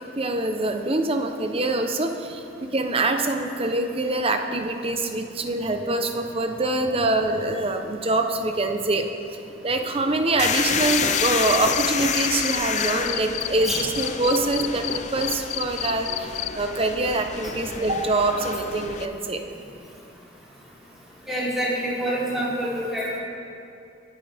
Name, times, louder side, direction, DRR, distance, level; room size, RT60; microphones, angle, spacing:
voice 1, 0.2-9.0 9.6-19.4, right 2 dB, 30° right, 5 dB, 1.0 m, -25 dB
sound 1, 10.4-19.1, left 6 dB, 40° left, 0.7 m, -29 dB
Cricket, 10.9-11.9 12.1-16.5, left 16 dB, 85° left, 0.5 m, -29 dB
voice 2, 21.3-23.2, equal, ahead, -9 dB, 3.8 m, -26 dB
25.0 x 9.5 x 3.6 m, 2.6 s
head